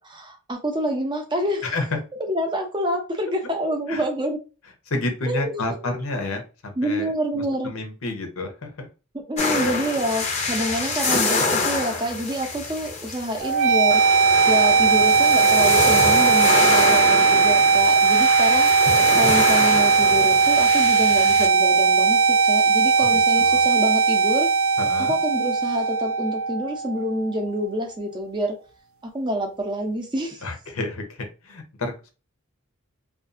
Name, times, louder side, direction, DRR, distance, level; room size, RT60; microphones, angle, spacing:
voice 1, 0.1-1.7 2.2-4.4 5.3-6.0 6.8-7.7 9.3-18.7 19.2-24.5 25.1-28.5 29.1-30.4, equal, 20° right, 2 dB, 0.5 m, -27 dB
voice 2, 1.6-2.0 3.9-4.1 4.9-7.1 7.3-8.9 9.5-9.7 23.0-23.6 24.8-25.2 30.4-32.1, left 2 dB, 80° left, 5 dB, 0.7 m, -30 dB
sound 1, 9.4-21.5, left 3 dB, 30° left, 0.5 m, -26 dB
sound 2, 13.4-27.4, right 5 dB, 70° right, 0.4 m, -18 dB
2.5 x 2.3 x 2.4 m, 0.32 s
head